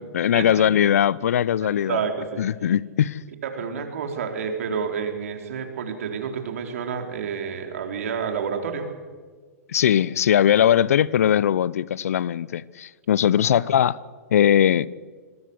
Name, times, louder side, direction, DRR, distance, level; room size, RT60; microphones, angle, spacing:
voice 1, 0.0-2.0 2.4-3.2 9.7-14.0 14.3-14.9, left 10 dB, 65° left, 0.7 m, -20 dB
voice 2, 1.6-2.4 3.4-8.9, right 6 dB, 60° right, 4.3 m, -29 dB
26.5 x 22.0 x 8.3 m
figure-of-eight pair, 110°, 9 cm